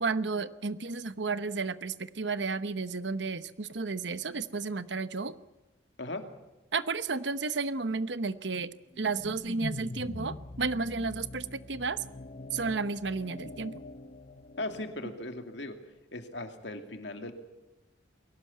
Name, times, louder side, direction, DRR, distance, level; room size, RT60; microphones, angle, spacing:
voice 1, 0.0-5.3 6.7-12.0 12.5-13.8, right 4 dB, 65° right, 13 dB, 1.0 m, -32 dB
sound 1, 8.9-15.3, left 2 dB, 40° left, 0.8 m, -43 dB
voice 2, 14.6-15.8 16.1-17.3, left 2 dB, 65° left, 6 dB, 2.6 m, -38 dB
22.0 x 18.0 x 8.5 m, 1.0 s
head